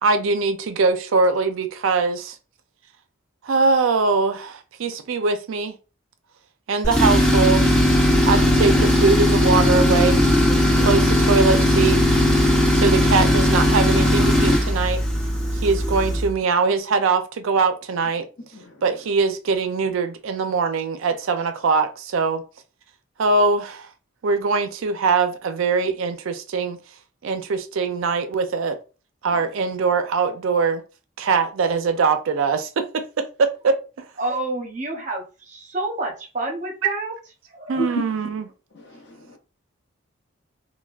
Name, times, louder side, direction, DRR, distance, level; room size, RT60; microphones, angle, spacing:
voice 1, 0.0-2.4 3.4-5.8 6.7-7.7 8.3-10.2 10.8-12.0 12.7-15.0 15.6-18.2 18.8-22.4 23.2-23.9 24.2-26.8 27.2-28.8 29.2-30.8 31.2-33.8 37.7-38.5, right 4 dB, 75° right, 0.4 m, -22 dB
Tools, 6.8-16.3, left 1 dB, 5° left, 0.5 m, -18 dB
voice 2, 18.4-18.7 37.7-38.0 38.7-39.4, equal, 55° left, 0.7 m, -32 dB
voice 3, 34.2-37.1 37.5-37.9, right 2 dB, 35° right, 0.7 m, -29 dB
3.3 x 2.2 x 2.3 m
head